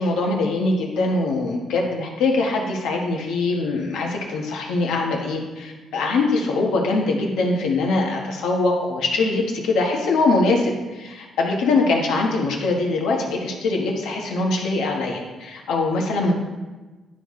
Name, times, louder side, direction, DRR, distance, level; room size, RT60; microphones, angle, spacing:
voice 1, 0.0-16.3, left 3 dB, 85° left, 0 dB, 1.3 m, -22 dB
11.0 x 4.3 x 3.2 m, 1.2 s
cardioid pair, 90°, 0 cm